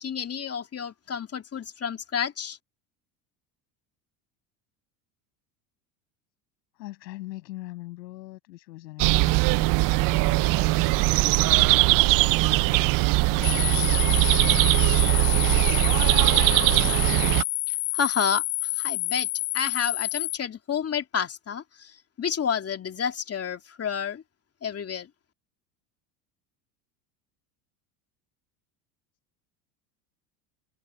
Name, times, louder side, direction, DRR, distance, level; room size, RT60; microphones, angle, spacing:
voice 1, 0.0-2.6 17.9-18.4 18.8-19.3 19.5-21.6 22.2-24.2 24.6-25.1, left 7 dB, 30° left, 2.8 m, -29 dB
voice 2, 6.7-14.8 15.3-16.1 16.6-17.3, left 18 dB, 85° left, 7.9 m, -43 dB
sound 1, 9.0-17.4, right 22 dB, 45° right, 0.4 m, -21 dB
sound 2, 13.4-20.4, left 28 dB, 60° left, 0.6 m, -28 dB
supercardioid pair, 100°, 49 cm